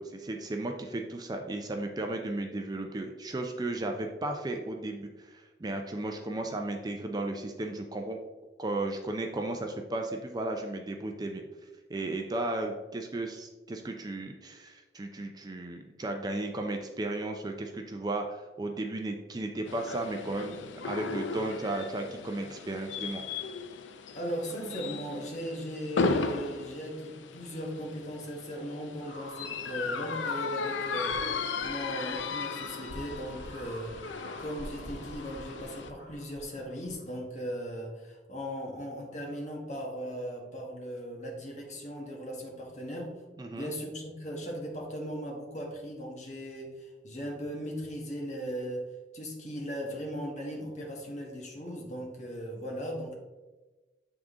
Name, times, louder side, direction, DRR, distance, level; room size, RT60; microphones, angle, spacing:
voice 1, 0.0-8.2 8.6-11.4 11.9-20.6 20.8-23.2 43.4-43.7, right 2 dB, 20° right, 3 dB, 0.4 m, -35 dB
sound 1, 19.7-35.9, left 4 dB, 85° left, 0.4 m, -36 dB
voice 2, 24.1-34.1 34.4-43.2 43.5-48.9 49.1-53.1, equal, 40° left, 0 dB, 1.3 m, -38 dB
sound 2, 29.0-37.0, equal, 70° left, 1.8 m, -47 dB
7.5 x 3.6 x 3.6 m, 1.2 s
head